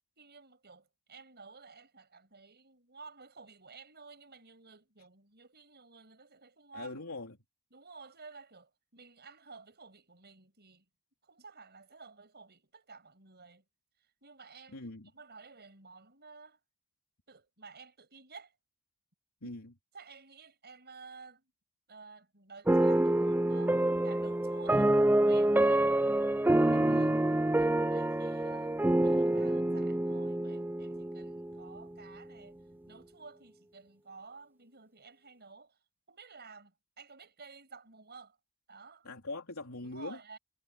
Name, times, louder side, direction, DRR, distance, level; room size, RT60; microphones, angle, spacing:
voice 1, 0.2-7.0 7.7-10.9 11.2-13.6 14.0-14.8 15.1-16.6 17.3-18.5 19.4-19.6 19.9-21.5 21.9-26.0 26.7-27.1 27.5-32.6 32.9-35.8 36.1-38.4 38.7-39.1 39.8-40.4, right 4 dB, 50° right, 6.5 m, -53 dB
voice 2, 6.7-7.4 14.7-15.1 19.4-19.7 26.7-27.4 39.0-40.2, left 2 dB, 80° left, 3.4 m, -42 dB
sound 1, 22.7-31.8, right 1 dB, 10° right, 0.4 m, -27 dB
head